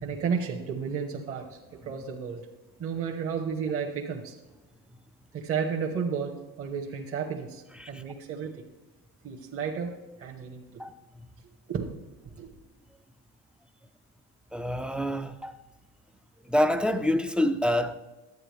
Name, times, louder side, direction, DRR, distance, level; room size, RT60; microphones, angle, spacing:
voice 1, 0.0-2.4 2.8-4.3 5.3-8.6 9.2-10.8 11.7-11.9 12.4-12.5, right 6 dB, 40° right, 1.2 m, -32 dB
voice 2, 14.5-15.5 16.5-17.9, left 1 dB, 5° right, 0.4 m, -26 dB
12.0 x 8.9 x 3.4 m
cardioid pair, 120°, 34 cm